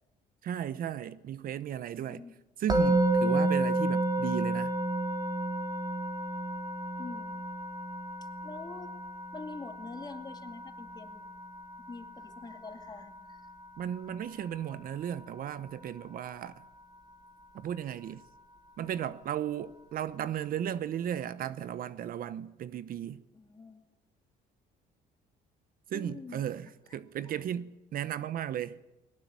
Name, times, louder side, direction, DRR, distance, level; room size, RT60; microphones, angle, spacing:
voice 1, 0.4-2.2 2.6-4.7 13.8-16.6 17.5-18.2 18.8-23.2 25.9-28.8, right 10 dB, 60° right, 0.9 m, -35 dB
voice 2, 2.0-2.3 7.0-7.4 8.4-8.9 9.3-11.3 11.9-13.4 23.3-23.8 25.9-26.4, left 4 dB, 25° left, 2.6 m, -45 dB
Musical instrument, 2.7-13.8, right 2 dB, 25° right, 3.2 m, -31 dB
20.5 x 18.5 x 9.7 m
cardioid pair, 110°, 17 cm